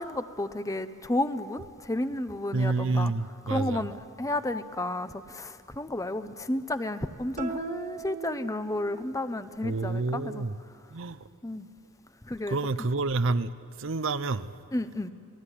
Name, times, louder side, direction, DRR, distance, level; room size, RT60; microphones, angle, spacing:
voice 1, 0.0-3.1 3.5-10.4 11.4-11.7 12.3-12.6 14.7-15.1, left 1 dB, 15° left, 11 dB, 0.8 m, -32 dB
voice 2, 2.5-3.9 9.6-10.6 10.9-11.2 12.5-13.5 13.8-14.5, right 3 dB, 60° right, 13 dB, 0.7 m, -28 dB
sound 1, 7.4-9.2, right 5 dB, 35° right, 1.6 m, -38 dB
29.0 x 18.5 x 10.0 m, 2.4 s
head